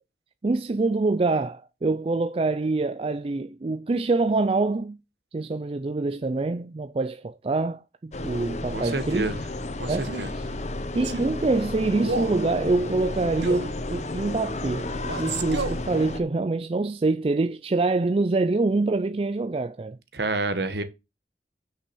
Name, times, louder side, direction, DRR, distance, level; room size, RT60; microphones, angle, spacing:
voice 1, 0.4-5.0 5.3-9.3 9.9-10.1 10.9-14.9 15.2-20.0, right 3 dB, 30° right, 0.4 m, -25 dB
sound 1, 8.1-16.2, left 2 dB, 40° left, 0.8 m, -32 dB
voice 2, 8.7-9.4 9.8-10.3 20.1-20.8, right 2 dB, 70° right, 1.3 m, -28 dB
Male speech man speaking, 10.0-10.4 11.0-11.3 12.0-12.4 13.4-13.7 15.0-15.9, right 3 dB, 85° right, 1.0 m, -31 dB
6.1 x 5.8 x 6.2 m
head